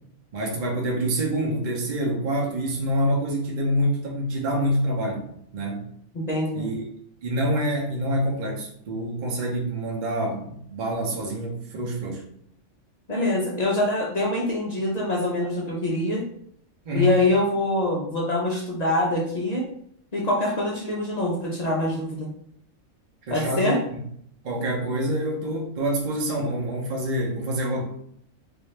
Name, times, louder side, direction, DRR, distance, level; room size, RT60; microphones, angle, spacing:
voice 1, 0.3-5.9 6.5-6.8 7.2-12.3 16.8-17.1 23.3-24.0 24.4-27.8, right 1 dB, 45° right, -1 dB, 0.7 m, -26 dB
voice 2, 6.1-6.7 13.1-16.3 16.9-19.7 20.1-22.3 23.3-23.8, left 1 dB, 60° left, -2 dB, 0.4 m, -24 dB
3.7 x 2.6 x 3.2 m, 0.68 s
omnidirectional pair, 1.5 m